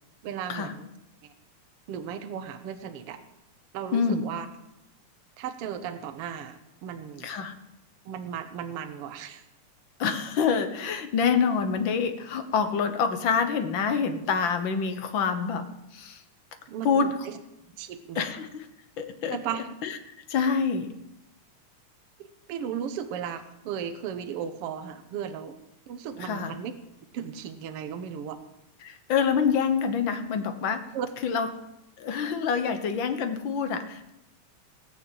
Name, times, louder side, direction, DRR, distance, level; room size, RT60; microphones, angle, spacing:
voice 1, 0.2-0.9 1.2-1.3 1.9-3.2 3.7-4.5 5.4-7.3 8.0-9.4 16.7-17.4 17.8-18.2 19.3-19.7 22.2-25.5 25.9-26.7 27.1-28.4 30.9-31.1, right 8 dB, 60° right, 8 dB, 1.8 m, -35 dB
voice 2, 3.9-4.2 7.2-7.5 10.0-15.7 15.9-16.2 16.8-17.1 18.1-18.6 19.0-19.4 19.8-20.0 20.3-20.9 26.2-26.5 28.8-30.8 31.2-31.5 32.0-34.1, left 6 dB, 55° left, 8 dB, 1.5 m, -26 dB
18.5 x 6.5 x 8.5 m, 0.86 s
omnidirectional pair, 3.4 m